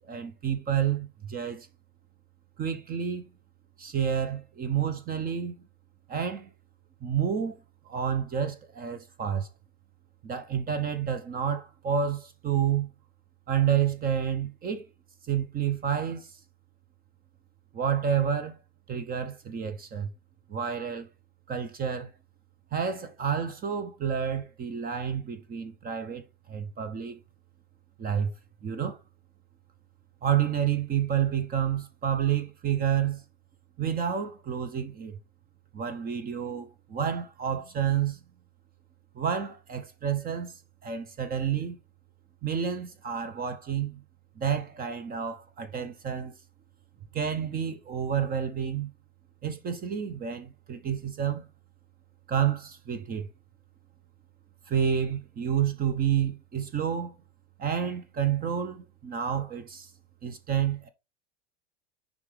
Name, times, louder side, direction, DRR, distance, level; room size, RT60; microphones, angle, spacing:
voice 1, 0.1-1.7 2.6-3.3 3.8-5.5 6.1-6.5 7.0-7.6 7.8-9.5 10.2-12.9 13.5-14.8 15.3-16.4 17.7-18.6 18.9-20.1 20.5-21.1 21.5-22.1 22.7-27.2 28.0-28.3 28.6-29.0 30.2-33.2 33.8-35.1 35.7-38.2 39.1-41.8 42.4-44.0 44.4-46.3 47.1-48.9 49.4-51.4 52.3-53.3 54.7-57.1 57.6-59.9 60.2-60.9, right 8 dB, 25° right, 0.9 m, -29 dB
6.4 x 5.2 x 3.3 m
hypercardioid pair, 105°, 32 cm